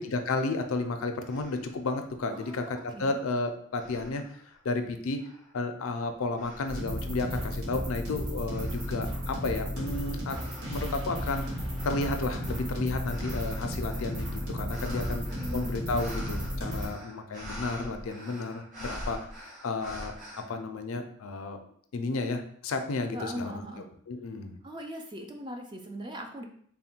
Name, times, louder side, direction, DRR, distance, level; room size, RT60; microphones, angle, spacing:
voice 1, 0.0-2.7 3.0-4.2 4.6-5.2 5.5-10.4 10.7-11.5 11.8-15.3 15.5-19.2 19.6-20.1 20.5-21.6 21.9-23.6 24.1-24.5, left 3 dB, 75° left, 7 dB, 0.4 m, -32 dB
sound 1, 0.7-0.8 1.2-1.8 2.4-3.3 3.7-4.6 5.2-5.7 6.3-7.1 7.6-20.4, equal, 40° right, 1.1 m, -45 dB
voice 2, 2.3-3.2 14.9-15.8 23.1-23.9 24.6-26.4, equal, 20° right, 3 dB, 0.3 m, -40 dB
sound 2, 6.7-16.9, equal, 80° right, 1.5 m, -34 dB
3.5 x 2.2 x 4.3 m, 0.63 s
head